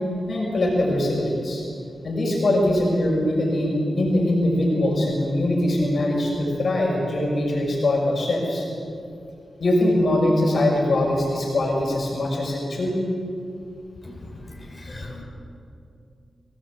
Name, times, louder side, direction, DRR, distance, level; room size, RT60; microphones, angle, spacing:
voice 1, 0.3-1.6 2.0-8.7 9.6-13.0, left 1 dB, 60° left, -1 dB, 5.9 m, -22 dB
voice 2, 14.5-15.2, left 2 dB, 20° left, -1 dB, 6.7 m, -38 dB
24.0 x 18.0 x 8.5 m, 2.5 s
cardioid pair, 70°, 0 cm